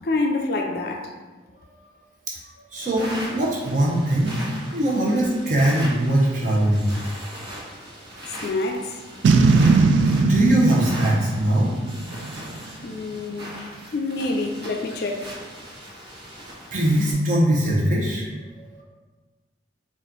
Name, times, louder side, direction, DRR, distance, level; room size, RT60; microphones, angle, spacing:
voice 1, 0.0-1.1 8.3-9.0 12.8-13.6 13.9-15.3, left 2 dB, 50° left, 0.4 m, -27 dB
voice 2, 2.7-4.4 4.7-6.9 9.7-11.7 16.7-18.8, right 1 dB, 40° right, 0.9 m, -21 dB
sound 1, 2.8-17.1, equal, 60° right, 1.3 m, -39 dB
Boom, 9.2-12.6, right 4 dB, 75° right, 0.3 m, -19 dB
4.2 x 2.5 x 3.8 m
head